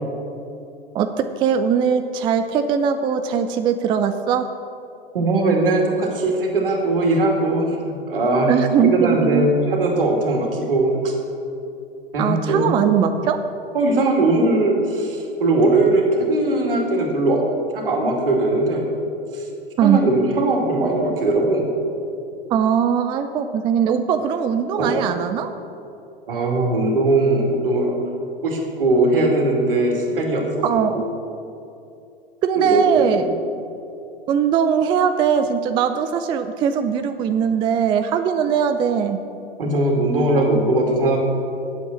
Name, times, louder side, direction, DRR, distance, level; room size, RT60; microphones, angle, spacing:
voice 1, 0.9-4.5 8.5-9.5 12.2-13.4 19.8-20.0 22.5-25.5 30.6-31.0 32.4-33.3 34.3-39.2, right 7 dB, 15° right, 8 dB, 0.4 m, -20 dB
voice 2, 5.1-8.5 8.8-11.1 12.1-12.7 13.7-17.4 17.7-18.8 19.3-19.5 19.8-21.7 24.8-25.0 26.3-27.9 28.4-30.5 30.7-31.0 32.5-33.3 39.6-41.2, right 2 dB, 70° right, 0 dB, 2.4 m, -20 dB
8.6 x 7.6 x 8.0 m, 2.6 s
figure-of-eight pair, 95°, 29 cm